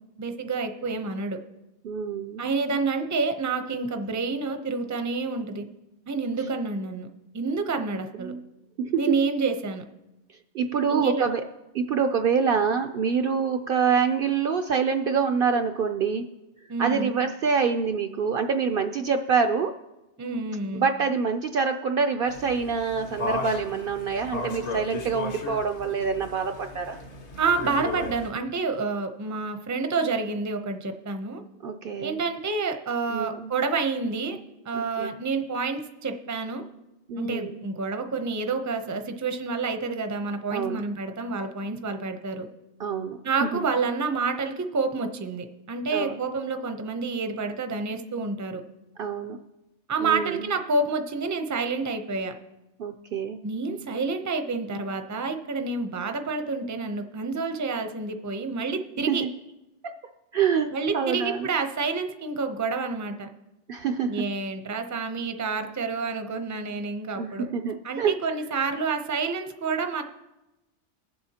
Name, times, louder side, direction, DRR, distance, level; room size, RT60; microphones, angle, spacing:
voice 1, 0.2-1.4 2.4-5.7 6.1-7.1 7.3-8.3 9.0-9.8 10.9-11.3 16.7-17.2 20.2-20.9 27.4-31.4 32.0-34.4 34.6-36.6 37.2-42.5 43.2-48.6 49.9-52.3 53.4-59.2 60.7-63.3 64.1-67.5 67.8-70.0, right 4 dB, 20° right, 6 dB, 0.5 m, -28 dB
voice 2, 1.8-2.4 8.2-8.4 8.8-9.2 10.5-11.4 11.7-16.3 16.8-19.7 20.7-27.0 31.6-32.2 33.1-33.5 34.7-35.2 37.1-37.6 40.5-40.9 42.8-43.7 45.9-46.2 49.0-49.4 50.0-50.5 52.8-53.4 59.1-59.3 59.8-60.0 60.3-61.5 63.7-64.2 67.2-68.1, right 6 dB, 60° right, 7 dB, 0.6 m, -26 dB
sound 1, 22.3-28.3, left 3 dB, 70° left, 1.6 m, -35 dB
22.0 x 7.6 x 2.8 m, 0.98 s
omnidirectional pair, 1.2 m